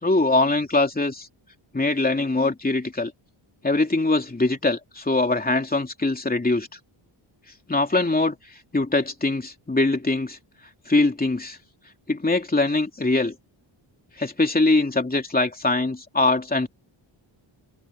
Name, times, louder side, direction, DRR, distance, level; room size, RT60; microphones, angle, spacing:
voice 1, 0.0-1.3 1.7-3.1 3.6-6.7 7.7-8.4 8.7-10.4 10.9-11.6 12.1-13.3 14.2-16.7, left 2 dB, 20° left, 3.0 m, -22 dB
wide cardioid pair, 115°, 48 cm